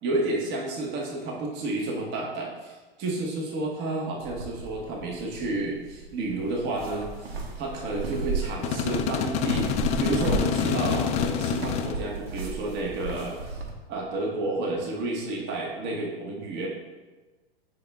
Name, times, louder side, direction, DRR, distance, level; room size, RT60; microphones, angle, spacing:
voice 1, 0.0-9.7 10.0-13.6 13.9-16.7, right 2 dB, 35° right, -1 dB, 1.4 m, -31 dB
sound 1, 4.2-13.7, right 3 dB, 85° right, 1.2 m, -35 dB
sound 2, 8.6-11.9, left 7 dB, 25° left, 0.4 m, -27 dB
8.9 x 5.5 x 2.3 m, 1.2 s
hypercardioid pair, 110°, 30 cm